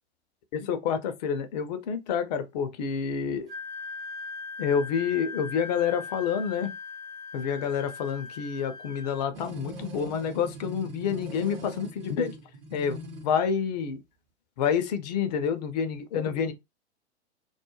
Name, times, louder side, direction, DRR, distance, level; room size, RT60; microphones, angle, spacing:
voice 1, 0.5-3.5 4.6-6.7 7.3-12.3 12.7-14.0 14.6-16.5, left 7 dB, 40° left, 0.5 m, -28 dB
Wind instrument woodwind instrument, 3.5-9.3, left 4 dB, 10° right, 0.5 m, -40 dB
sound 1, 9.3-13.3, equal, 40° right, 0.8 m, -41 dB
2.3 x 2.1 x 3.0 m
figure-of-eight pair, 105°, 34 cm